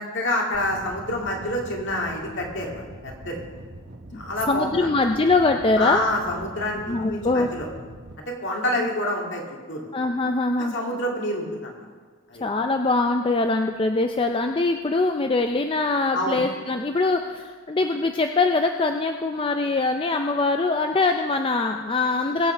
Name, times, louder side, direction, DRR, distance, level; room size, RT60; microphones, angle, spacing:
voice 1, 0.0-3.4 4.1-4.9 5.8-7.7 8.3-9.4 9.7-9.9 10.7-11.8 12.3-12.4 16.1-16.4, left 1 dB, 55° left, 0 dB, 2.4 m, -27 dB
sound 1, 0.5-8.2, right 1 dB, 50° right, 1.0 m, -43 dB
voice 2, 4.5-6.0 6.9-7.5 9.9-10.7 12.4-22.5, left 3 dB, 25° left, 5 dB, 0.4 m, -23 dB
20.5 x 8.1 x 4.5 m, 1.5 s
head